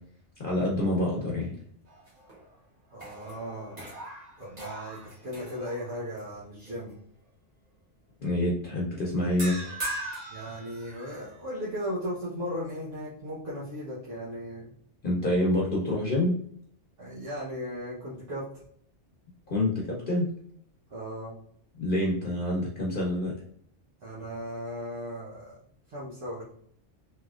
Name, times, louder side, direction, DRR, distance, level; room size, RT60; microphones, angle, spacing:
voice 1, 0.4-1.5 8.2-9.8 15.0-16.3 19.5-20.3 21.8-23.3, left 1 dB, 50° left, -3 dB, 0.9 m, -27 dB
sound 1, 1.9-2.6 2.9-6.2 6.7-6.9 9.4-11.3, right 1 dB, 35° right, 1.2 m, -40 dB
voice 2, 2.9-3.8 4.4-6.9 10.3-14.7 17.0-18.6 20.9-21.3 24.0-25.6 25.9-26.4, equal, 80° right, -8 dB, 1.2 m, -36 dB
3.4 x 2.9 x 2.4 m, 0.65 s
omnidirectional pair, 1.2 m